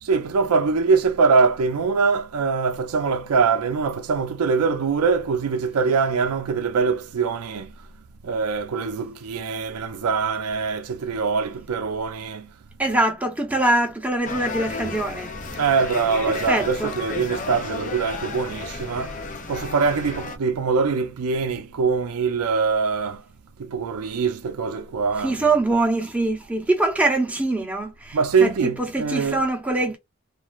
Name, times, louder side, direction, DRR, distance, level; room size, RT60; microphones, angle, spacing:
voice 1, 0.0-7.7 8.2-12.5 15.6-19.2 19.5-23.2 23.6-25.6 28.1-29.5, right 5 dB, 85° right, 0.4 m, -23 dB
voice 2, 12.8-15.3 16.3-17.0 25.2-30.0, right 2 dB, 5° right, 0.6 m, -23 dB
sound 1, 14.2-20.4, left 3 dB, 35° left, 0.5 m, -33 dB
3.0 x 2.4 x 2.3 m
head